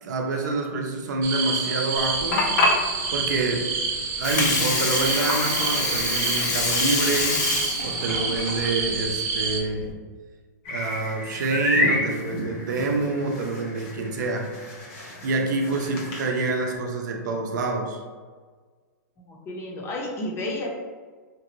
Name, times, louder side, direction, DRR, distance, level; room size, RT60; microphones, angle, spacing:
voice 1, 0.0-2.5 3.1-3.7 4.2-7.4 7.8-9.9 10.7-14.5 14.9-18.0, right 3 dB, 70° right, 2 dB, 0.6 m, -27 dB
sound 1, 1.2-9.6, right 4 dB, 25° right, 0.5 m, -28 dB
Water, 2.0-9.9, left 3 dB, 70° left, 0.6 m, -26 dB
sound 2, 10.6-16.8, left 1 dB, 45° left, 1.0 m, -30 dB
voice 2, 19.2-20.7, left 1 dB, 25° left, -2 dB, 0.7 m, -32 dB
2.9 x 2.5 x 2.9 m, 1.5 s
hypercardioid pair, 135°, 10 cm